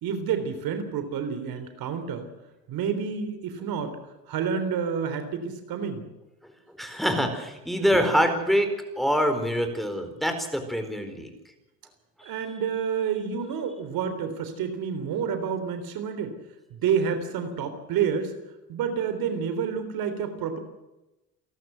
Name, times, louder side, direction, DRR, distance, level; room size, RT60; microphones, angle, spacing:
voice 1, 0.0-2.3 2.7-4.0 4.3-6.0 12.2-16.3 16.7-18.3 18.7-20.6, right 7 dB, 70° right, 9 dB, 3.7 m, -29 dB
voice 2, 6.8-8.7 9.0-11.3 12.2-12.3, equal, ahead, 6 dB, 4.5 m, -25 dB
29.0 x 12.0 x 8.0 m, 0.99 s
cardioid pair, 110°, 36 cm